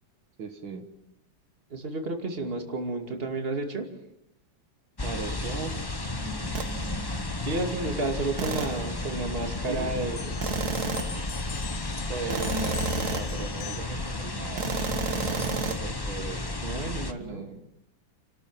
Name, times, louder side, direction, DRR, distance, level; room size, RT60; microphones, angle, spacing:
voice 1, 0.4-0.9 5.0-5.7 6.1-7.4 9.6-10.0 12.1-14.6 15.0-16.5 17.2-17.7, right 4 dB, 75° right, 5 dB, 2.5 m, -38 dB
voice 2, 1.7-3.9 7.4-10.4 16.6-17.5, right 2 dB, 30° right, 3 dB, 2.7 m, -31 dB
sound 1, 5.0-17.1, left 2 dB, 20° left, 0.7 m, -33 dB
sound 2, 6.5-6.8 8.4-8.9 10.4-11.2 12.3-13.4 14.6-15.8, right 6 dB, 60° right, 1.5 m, -31 dB
sound 3, 10.1-14.1, left 7 dB, 60° left, 1.7 m, -42 dB
29.0 x 13.5 x 7.5 m, 0.82 s
omnidirectional pair, 2.1 m